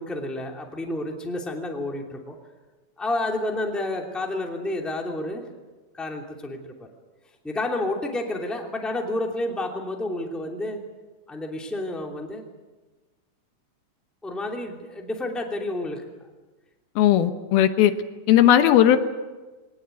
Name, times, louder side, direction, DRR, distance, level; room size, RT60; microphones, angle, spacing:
voice 1, 0.0-2.4 3.0-5.4 5.9-6.9 7.4-10.8 11.3-12.4 14.2-16.0, left 2 dB, ahead, 1 dB, 2.1 m, -30 dB
voice 2, 17.0-17.9 18.3-19.0, left 11 dB, 85° left, 9 dB, 3.0 m, -17 dB
22.5 x 18.5 x 9.2 m, 1.2 s
omnidirectional pair, 4.3 m